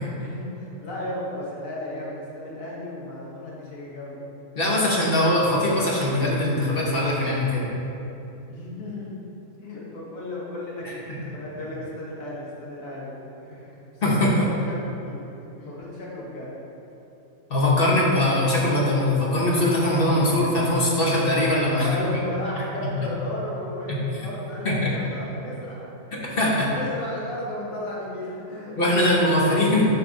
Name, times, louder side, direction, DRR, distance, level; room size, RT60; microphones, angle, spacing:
voice 1, 0.0-4.2 8.5-9.1 9.6-15.3 15.6-16.5 21.7-25.9 26.3-28.7, left 1 dB, 75° left, -6 dB, 1.7 m, -34 dB
voice 2, 4.6-7.6 10.8-10.9 14.0-14.3 17.5-22.0 24.6-24.9 26.2-26.7 28.8-29.9, left 1 dB, 45° left, -4 dB, 1.0 m, -21 dB
5.6 x 4.7 x 3.8 m, 2.9 s
omnidirectional pair, 1.4 m